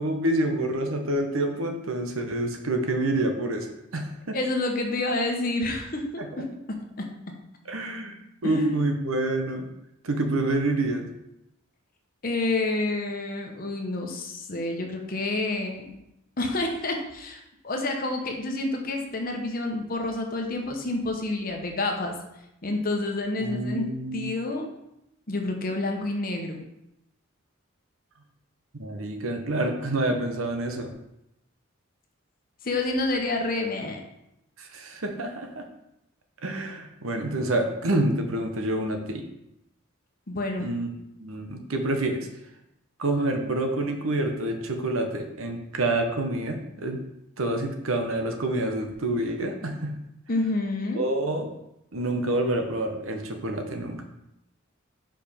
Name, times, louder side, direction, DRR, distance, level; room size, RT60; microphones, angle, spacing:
voice 1, 0.0-4.4 6.2-6.3 7.7-9.7 10.0-11.1 23.4-24.3 28.7-30.9 34.6-35.7 36.4-39.3 40.6-40.9 41.2-42.3 43.0-47.0 47.4-49.9 50.9-51.5 51.9-54.0, right 1 dB, 85° right, 4 dB, 1.0 m, -27 dB
voice 2, 4.3-6.4 8.4-8.8 12.2-16.0 16.4-22.1 22.6-23.9 24.1-24.7 25.3-26.6 32.6-34.0 40.3-40.7 50.3-51.0, left 2 dB, 45° left, 2 dB, 1.0 m, -28 dB
5.2 x 4.9 x 5.1 m, 0.84 s
head